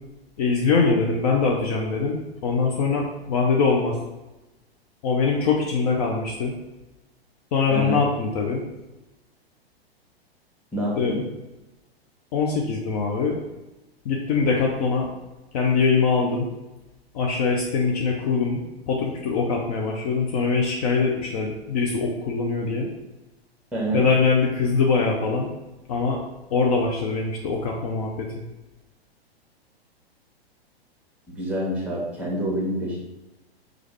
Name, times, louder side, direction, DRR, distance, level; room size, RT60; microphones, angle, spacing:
voice 1, 0.4-4.0 5.0-6.5 7.5-8.6 11.0-11.1 12.3-13.4 14.0-15.1 15.5-16.5 17.1-22.9 23.9-25.5 25.9-26.2 26.5-28.3, left 4 dB, 40° left, -1 dB, 0.5 m, -23 dB
voice 2, 7.7-8.0 10.7-11.3 23.7-24.0 31.3-33.0, right 1 dB, 5° right, -4 dB, 1.1 m, -27 dB
4.8 x 2.4 x 3.1 m, 1.0 s
figure-of-eight pair, 105°, 31 cm